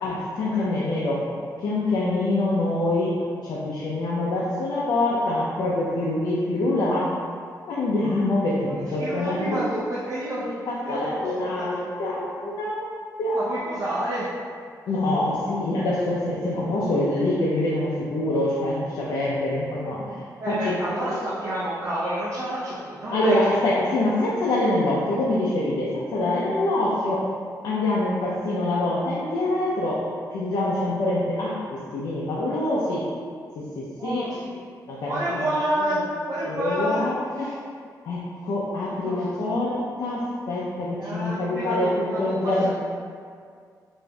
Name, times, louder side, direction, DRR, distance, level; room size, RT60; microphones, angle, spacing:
voice 1, 0.0-1.2 1.6-3.1 3.4-7.1 7.7-9.6 10.4-12.9 13.2-13.4 14.9-20.2 20.5-20.7 23.1-27.2 27.6-30.0 30.3-33.1 33.6-34.3 34.9-35.4 35.8-35.9 36.5-37.5 38.0-42.7, left 2 dB, 75° left, -6 dB, 0.5 m, -25 dB
voice 2, 8.6-10.4 10.8-11.6 13.3-14.3 20.4-23.6 27.0-27.2 34.0-34.6 35.1-37.0 37.3-37.6 39.0-39.2 41.0-42.7, right 1 dB, 45° right, -9 dB, 0.6 m, -29 dB
5.0 x 2.6 x 2.3 m, 2.1 s
wide cardioid pair, 150°, 7 cm